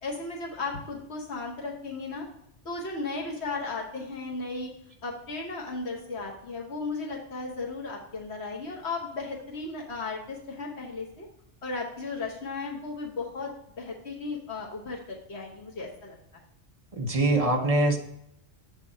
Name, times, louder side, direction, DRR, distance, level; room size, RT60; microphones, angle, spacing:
voice 1, 0.0-2.2 2.6-4.7 5.0-11.3 11.6-16.2, left 3 dB, 70° left, -2 dB, 1.3 m, -35 dB
voice 2, 16.9-18.0, right 2 dB, 35° right, 2 dB, 1.0 m, -23 dB
7.4 x 3.5 x 5.4 m, 0.75 s
omnidirectional pair, 1.1 m